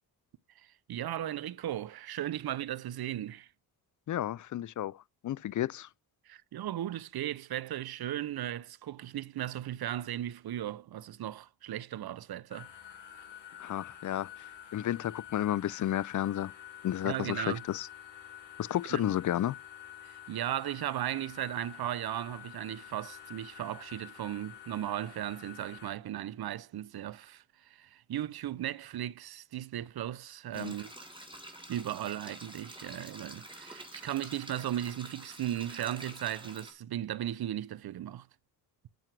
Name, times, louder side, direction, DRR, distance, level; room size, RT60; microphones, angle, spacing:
voice 1, 0.6-3.5 6.3-12.7 17.0-17.6 18.9-19.0 20.0-30.9 31.7-38.3, right 12 dB, 60° right, 0.7 m, -36 dB
voice 2, 4.1-4.9 5.2-5.9 13.6-14.3 14.7-16.5 16.8-17.9 18.6-19.5 30.6-30.7, left 12 dB, 45° left, 0.4 m, -32 dB
sound 1, 12.5-25.9, left 10 dB, 75° left, 3.6 m, -49 dB
sound 2, 30.5-36.7, right 1 dB, 10° right, 3.8 m, -48 dB
9.1 x 7.6 x 3.2 m
supercardioid pair, 45°, 44 cm